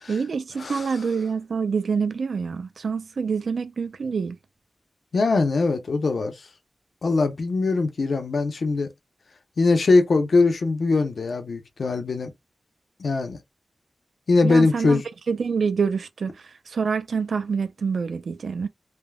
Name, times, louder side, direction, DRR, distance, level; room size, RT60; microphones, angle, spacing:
voice 1, 0.1-4.4 14.4-15.0 15.3-18.7, right 5 dB, 85° right, 0.4 m, -26 dB
voice 2, 0.6-0.9 5.1-6.3 7.0-8.9 9.6-12.3 13.0-13.4 14.3-15.0, left 3 dB, 75° left, 0.7 m, -21 dB
3.4 x 2.2 x 2.3 m
wide cardioid pair, 100°, 0 cm